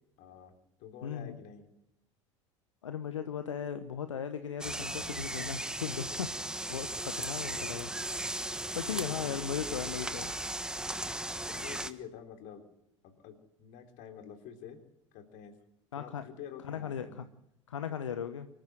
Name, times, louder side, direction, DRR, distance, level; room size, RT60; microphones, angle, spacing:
voice 1, 0.2-0.5 0.8-1.6 8.9-9.4 10.4-10.5 11.5-12.7 13.0-14.8 15.1-15.5 16.0-17.2, left 8 dB, 55° left, 6 dB, 3.6 m, -48 dB
voice 2, 1.0-1.4 2.8-6.3 6.7-7.9 8.5-10.3 15.9-16.2 16.6-17.2 17.7-18.5, left 8 dB, 80° left, 10 dB, 1.0 m, -37 dB
sound 1, 4.6-11.9, right 1 dB, 5° right, 1.3 m, -37 dB
25.0 x 14.0 x 7.7 m, 0.80 s
figure-of-eight pair, 75°, 16 cm